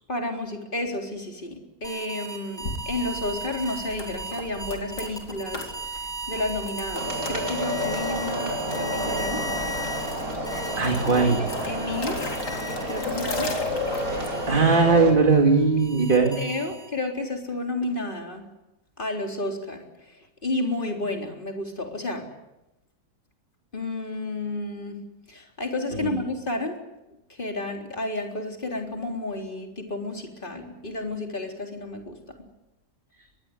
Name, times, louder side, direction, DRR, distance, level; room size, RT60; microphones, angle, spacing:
voice 1, 0.1-5.7 6.3-9.5 11.1-12.3 12.9-13.5 16.4-18.5 19.0-22.3 23.7-25.0 25.3-26.8 27.3-32.2, left 2 dB, 30° left, 2 dB, 4.1 m, -31 dB
sound 1, 1.8-13.3 13.7-17.1, right 2 dB, ahead, 5.1 m, -37 dB
sound 2, 2.6-14.7, left 2 dB, 75° left, 4.2 m, -39 dB
sound 3, 6.9-15.1, equal, 55° right, 5.5 m, -30 dB
voice 2, 10.8-11.4 14.5-16.4 26.0-26.2, right 4 dB, 30° right, 3 dB, 2.4 m, -19 dB
24.0 x 21.0 x 9.7 m, 0.96 s
omnidirectional pair, 1.8 m